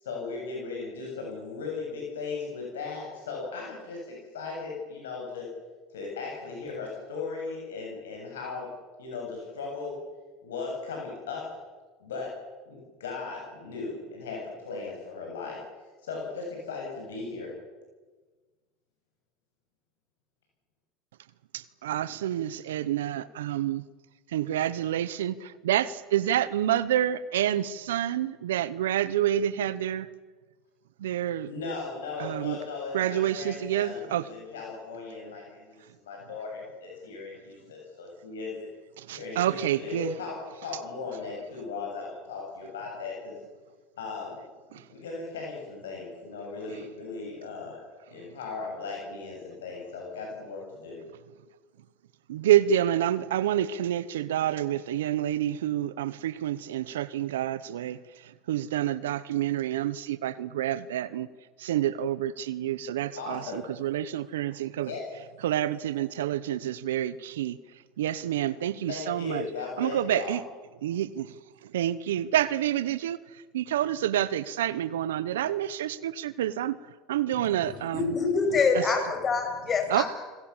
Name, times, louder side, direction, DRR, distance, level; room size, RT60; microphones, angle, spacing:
voice 1, 0.0-5.5 5.9-8.7 9.0-10.0 10.4-11.5 12.0-12.3 12.7-15.6 16.0-17.5 31.5-38.6 39.1-43.3 44.0-44.4 44.9-47.8 48.1-51.0 63.2-63.7 64.8-65.0 68.9-70.3, left 4 dB, 90° left, -1 dB, 7.9 m, -37 dB
voice 2, 21.5-23.8 24.3-30.1 31.0-31.5 32.2-32.6 32.9-34.3 39.0-40.1 44.7-44.8 52.3-61.3 61.6-64.9 65.4-67.6 68.0-69.4 69.8-70.4 70.8-71.3 71.6-76.8 77.1-78.2 78.7-78.9 79.9-80.1, right 11 dB, 85° right, 16 dB, 0.9 m, -28 dB
voice 3, 77.9-80.1, left 4 dB, 35° left, 5 dB, 6.5 m, -25 dB
29.5 x 20.5 x 7.3 m, 1.3 s
hypercardioid pair, 85°, 0 cm